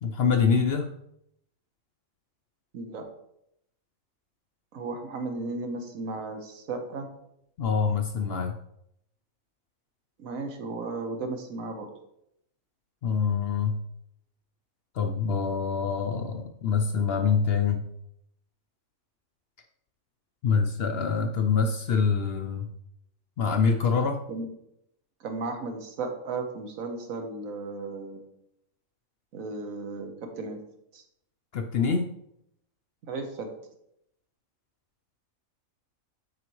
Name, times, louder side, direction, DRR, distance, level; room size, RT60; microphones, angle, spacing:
voice 1, 0.0-0.9 7.6-8.6 13.0-13.8 14.9-17.8 20.4-22.7 23.4-24.2 31.5-32.1, left 5 dB, 65° left, 6 dB, 0.6 m, -25 dB
voice 2, 4.7-7.1 10.2-11.9 24.3-24.5 25.2-28.2 29.3-30.6 30.9-31.0 33.1-33.5, right 3 dB, 75° right, 5 dB, 1.4 m, -35 dB
7.8 x 5.6 x 3.0 m, 0.76 s
omnidirectional pair, 1.4 m